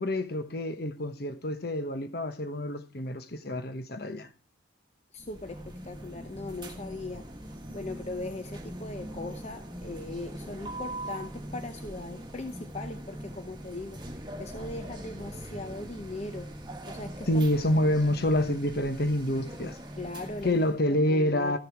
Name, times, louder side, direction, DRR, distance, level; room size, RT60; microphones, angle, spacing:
voice 1, 0.0-4.3 17.3-19.8 20.4-21.6, left 1 dB, 55° left, 1.1 m, -27 dB
voice 2, 5.1-16.5 16.9-17.5 17.8-17.9 20.0-20.6 20.9-21.6, left 2 dB, 35° left, 0.7 m, -39 dB
sound 1, 5.2-20.8, right 1 dB, 25° right, 1.4 m, -41 dB
14.0 x 6.7 x 4.7 m
head